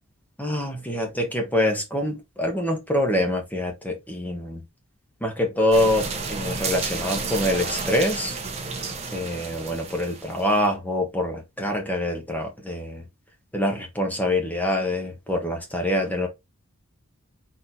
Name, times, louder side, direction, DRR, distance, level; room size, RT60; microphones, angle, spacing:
voice 1, 0.4-4.6 5.2-8.4 9.1-13.0 13.5-16.3, left 1 dB, 10° left, 1.2 m, -25 dB
sound 1, 5.7-10.6, right 4 dB, 30° right, 1.0 m, -31 dB
4.3 x 4.1 x 2.7 m
head